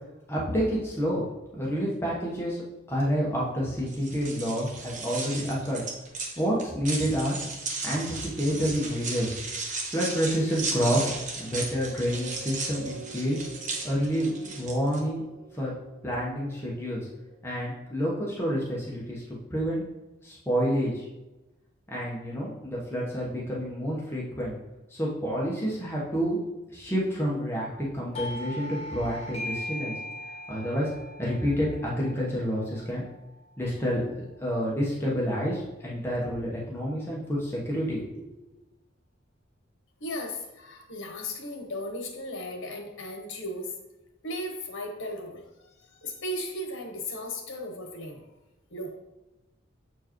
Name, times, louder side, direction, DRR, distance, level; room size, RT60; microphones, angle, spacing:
voice 1, 0.3-1.2 1.5-2.6 2.9-5.8 6.4-7.3 7.8-9.3 9.9-13.4 13.8-15.2 15.5-15.7 16.0-17.0 17.4-19.2 19.5-19.8 20.2-21.1 21.9-24.6 24.9-26.4 26.7-29.9 30.5-30.9 31.2-33.0 33.6-34.0 34.4-38.3, equal, 10° left, -5 dB, 1.1 m, -28 dB
sound 1, 3.9-15.0, right 3 dB, 40° right, 0.8 m, -36 dB
sound 2, 11.2-17.9 18.5-18.6, right 4 dB, 65° right, 0.5 m, -47 dB
Doorbell, 28.1-33.4, left 1 dB, 30° left, 0.5 m, -39 dB
voice 2, 40.0-43.7 44.2-48.2 48.7-49.0, left 1 dB, 80° left, 2 dB, 1.1 m, -36 dB
7.0 x 4.6 x 3.1 m, 1.0 s
head